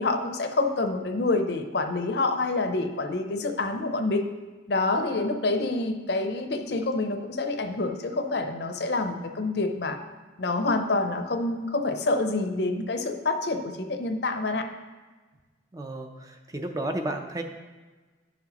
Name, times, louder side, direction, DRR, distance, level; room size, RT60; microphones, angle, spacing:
voice 1, 0.0-4.3 4.7-10.0 10.4-14.6, left 2 dB, 60° left, 6 dB, 0.6 m, -27 dB
voice 2, 15.7-17.4, right 1 dB, 20° right, 4 dB, 0.4 m, -32 dB
10.0 x 5.9 x 3.0 m, 1.3 s
head